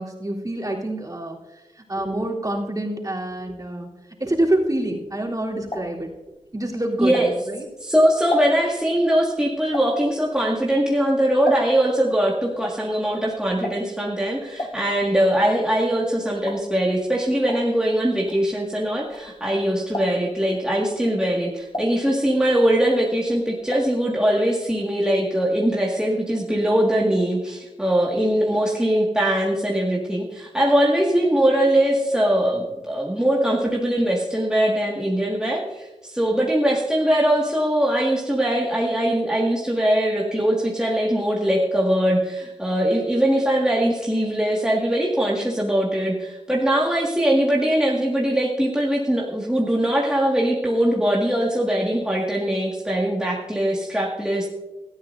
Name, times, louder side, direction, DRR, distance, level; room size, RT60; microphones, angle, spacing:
voice 1, 0.0-1.4 1.9-3.9 4.2-6.1 6.5-7.6, right 1 dB, 30° right, -3 dB, 3.4 m, -26 dB
sound 1, 5.1-7.7 8.0-12.0 12.3-19.6 19.9-20.4 20.9-22.6 22.9-24.0 24.3-24.4 24.6-24.7, left 1 dB, 35° left, 3.4 m, -35 dB
voice 2, 7.0-7.3 7.8-54.5, right 1 dB, 5° right, -3 dB, 1.9 m, -21 dB
18.5 x 13.0 x 2.6 m, 1.1 s
cardioid pair, 60°, 13 cm